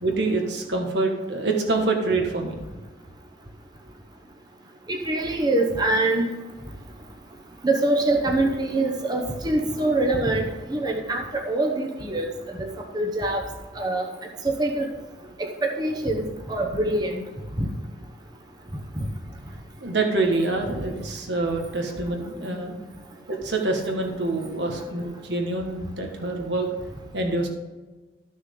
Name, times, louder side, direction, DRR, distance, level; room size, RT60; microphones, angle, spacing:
voice 1, 0.0-2.6 19.8-22.7 23.3-26.7 27.1-27.5, right 2 dB, 70° right, 2 dB, 1.6 m, -26 dB
voice 2, 4.9-6.3 7.6-12.3 12.6-12.7 12.9-13.4 13.7-14.1 14.4-14.9 15.4-17.2 17.6-17.7, right 2 dB, 20° right, 1 dB, 0.9 m, -24 dB
12.5 x 6.3 x 3.8 m, 1.2 s
head